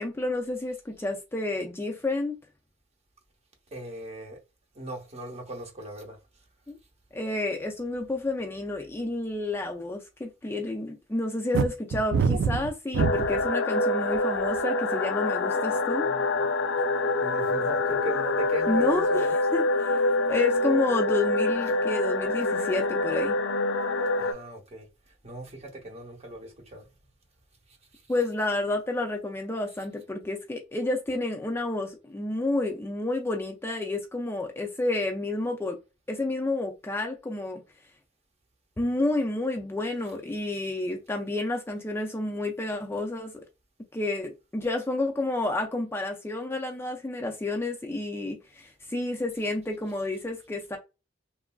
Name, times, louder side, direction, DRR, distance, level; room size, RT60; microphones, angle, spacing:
voice 1, 0.0-2.4 6.7-6.8 7.1-16.1 18.7-20.0 20.3-23.4 28.1-35.8 36.1-37.6 38.8-43.3 43.9-50.8, left 2 dB, 15° left, 0.3 m, -30 dB
voice 2, 3.7-4.4 4.8-6.2 17.2-19.4 24.2-24.9 25.2-26.8 28.1-28.2 29.8-29.9, equal, 35° right, 0.8 m, -38 dB
sound 1, 11.5-13.5 14.1-14.6, right 5 dB, 70° right, 0.3 m, -25 dB
sound 2, 13.0-24.3, left 2 dB, 80° left, 0.5 m, -26 dB
3.0 x 2.4 x 2.2 m
head